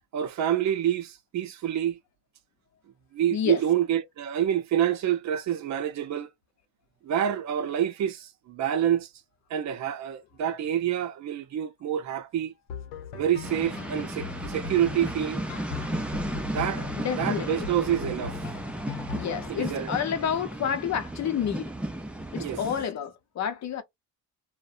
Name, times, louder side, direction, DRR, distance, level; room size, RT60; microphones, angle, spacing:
voice 1, 0.1-2.0 3.1-6.3 7.0-9.1 9.5-12.5 13.1-15.4 16.5-16.9 17.2-18.5 19.5-19.9 22.4-22.6, right 10 dB, 45° right, 0.6 m, -27 dB
sound 1, 12.7-19.5, left 6 dB, 90° left, 0.8 m, -39 dB
sound 2, 13.4-22.8, right 1 dB, 5° right, 0.4 m, -34 dB
voice 2, 17.0-17.7 19.1-21.7 22.3-23.8, left 8 dB, 40° left, 0.7 m, -29 dB
2.6 x 2.2 x 2.4 m
cardioid pair, 105°, 40 cm